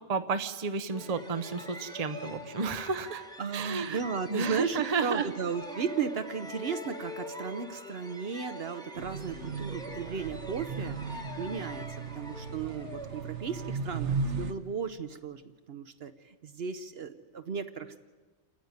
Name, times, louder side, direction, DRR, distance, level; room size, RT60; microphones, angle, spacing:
voice 1, 0.1-3.2 3.5-4.0 4.3-5.3, right 4 dB, 35° right, 10 dB, 0.9 m, -31 dB
sound 1, 0.9-14.4, left 1 dB, 5° left, 1.1 m, -44 dB
voice 2, 3.4-18.0, right 6 dB, 60° right, 9 dB, 1.0 m, -35 dB
sound 2, 9.0-14.5, right 4 dB, 80° right, 1.4 m, -36 dB
28.5 x 9.6 x 9.5 m, 1.3 s
omnidirectional pair, 1.2 m